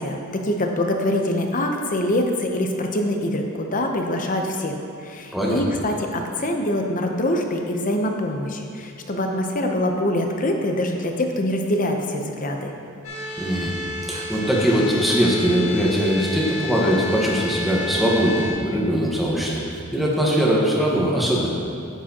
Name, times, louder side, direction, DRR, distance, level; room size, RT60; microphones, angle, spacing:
voice 1, 0.0-12.7, left 1 dB, 40° left, 3 dB, 0.7 m, -24 dB
sound 1, 13.0-18.5, left 2 dB, 75° left, 1.7 m, -31 dB
voice 2, 13.4-13.7 14.1-21.5, equal, ahead, -5 dB, 1.3 m, -21 dB
10.5 x 7.5 x 2.9 m, 2.5 s
head